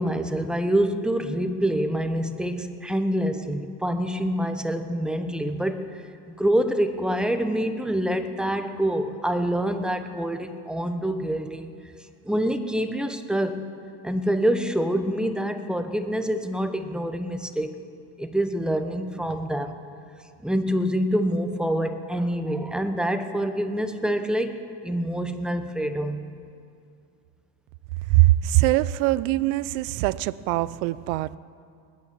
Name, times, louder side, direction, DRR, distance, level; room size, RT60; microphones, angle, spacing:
voice 1, 0.0-6.0 6.3-11.7 12.2-13.7 14.0-17.8 18.2-19.8 20.4-26.2, equal, ahead, 8 dB, 0.9 m, -26 dB
voice 2, 28.1-31.4, right 17 dB, 80° right, 19 dB, 0.6 m, -22 dB
20.5 x 9.5 x 7.2 m, 2.4 s
cardioid pair, 120°, 39 cm